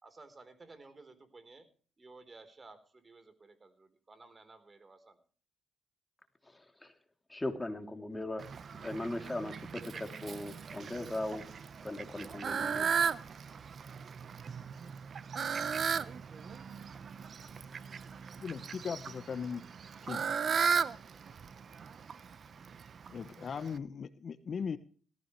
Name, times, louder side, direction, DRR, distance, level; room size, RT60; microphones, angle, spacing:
voice 1, 0.0-1.7 2.0-5.2, right 3 dB, 30° right, 4.0 m, -55 dB
voice 2, 6.4-6.9 7.3-8.5 8.8-11.4 11.8-12.9, left 1 dB, 15° left, 3.1 m, -39 dB
Fowl, 8.4-23.8, right 6 dB, 50° right, 1.1 m, -37 dB
voice 3, 18.4-19.6 20.0-20.2 23.1-24.8, left 6 dB, 50° left, 1.1 m, -38 dB
18.0 x 15.0 x 3.3 m
cardioid pair, 90°, 0 cm